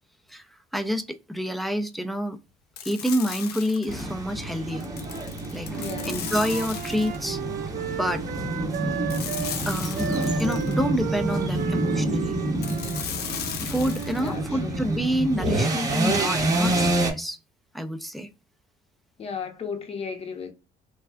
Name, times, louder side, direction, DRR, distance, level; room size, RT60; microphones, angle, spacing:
voice 1, 0.3-2.4 2.8-4.9 5.5-7.4 8.0-8.2 9.7-12.4 13.6-17.4 17.7-18.3, equal, ahead, 0.4 m, -28 dB
sound 1, 2.8-4.1 4.8-7.3 9.1-10.8 12.6-14.3, left 9 dB, 70° left, 0.5 m, -36 dB
sound 2, 3.9-17.1, right 1 dB, 20° right, 0.8 m, -28 dB
Wind instrument woodwind instrument, 5.7-9.6 9.9-14.3, right 8 dB, 55° right, 0.6 m, -35 dB
voice 2, 5.8-6.3 14.2-14.8 19.2-20.5, left 5 dB, 35° left, 0.7 m, -35 dB
3.3 x 2.3 x 2.2 m
cardioid pair, 110°, 17 cm